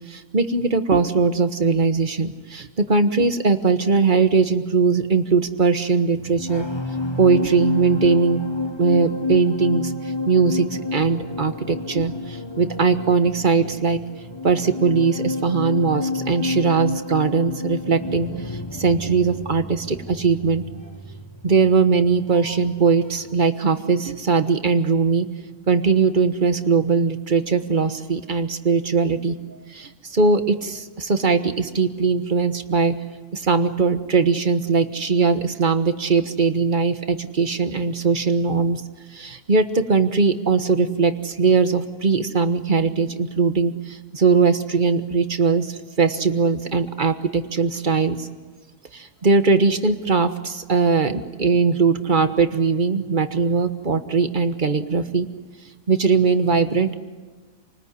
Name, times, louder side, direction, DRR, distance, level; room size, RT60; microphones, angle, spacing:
voice 1, 0.1-6.7 7.2-8.4 8.8-9.9 10.3-10.7 10.9-14.0 14.4-20.6 21.4-25.3 25.7-29.4 29.7-32.9 33.3-38.8 39.1-48.3 48.9-55.3 55.9-56.9, right 4 dB, 35° right, 9 dB, 1.2 m, -20 dB
sound 1, 6.1-22.8 23.0-23.4, left 3 dB, 15° left, 1.4 m, -30 dB
28.0 x 20.0 x 9.7 m, 1.3 s
omnidirectional pair, 1.7 m